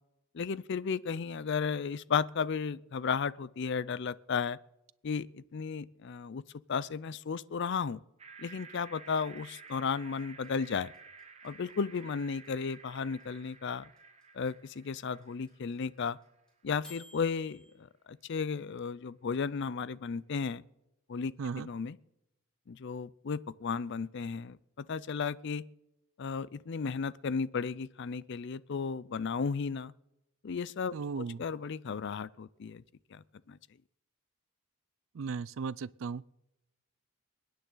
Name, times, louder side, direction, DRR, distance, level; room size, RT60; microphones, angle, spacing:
voice 1, 0.3-4.6 5.0-6.4 6.7-8.0 8.4-10.9 11.4-13.9 14.3-16.2 16.6-20.6 21.1-22.0 22.7-25.6 26.2-29.9 30.4-32.8 33.1-33.6, left 5 dB, 55° left, 0.4 m, -34 dB
sound 1, 8.2-16.4, right 5 dB, 30° right, 1.0 m, -53 dB
sound 2, 9.4-17.7, left 2 dB, 5° left, 5.7 m, -55 dB
voice 2, 30.9-31.4 35.1-36.2, right 5 dB, 70° right, 0.4 m, -36 dB
28.0 x 9.6 x 3.9 m
head